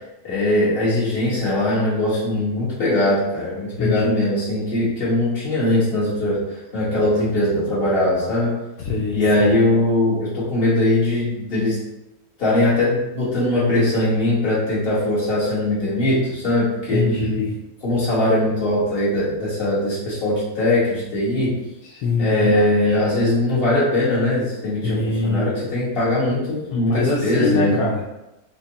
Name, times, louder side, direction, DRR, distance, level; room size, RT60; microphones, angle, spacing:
voice 1, 0.2-8.5 9.1-11.8 12.4-17.0 17.8-21.5 22.2-27.8, left 1 dB, 40° left, -8 dB, 1.6 m, -20 dB
voice 2, 3.8-4.1 8.8-9.2 16.9-17.6 21.8-23.0 24.8-25.5 26.7-28.0, left 3 dB, 80° left, -3 dB, 1.1 m, -23 dB
5.0 x 2.3 x 2.8 m, 0.95 s
omnidirectional pair, 1.6 m